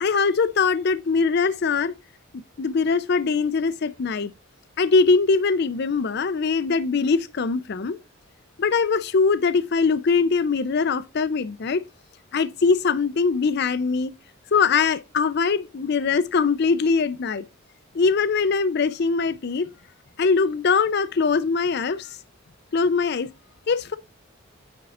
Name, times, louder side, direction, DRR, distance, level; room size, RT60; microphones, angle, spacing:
voice 1, 0.0-1.9 2.6-4.3 4.8-8.0 8.6-11.8 12.3-14.1 14.5-17.4 17.9-19.7 20.2-22.2 22.7-23.3 23.7-23.9, left 4 dB, 50° left, 0.5 m, -22 dB
9.6 x 3.7 x 4.2 m
head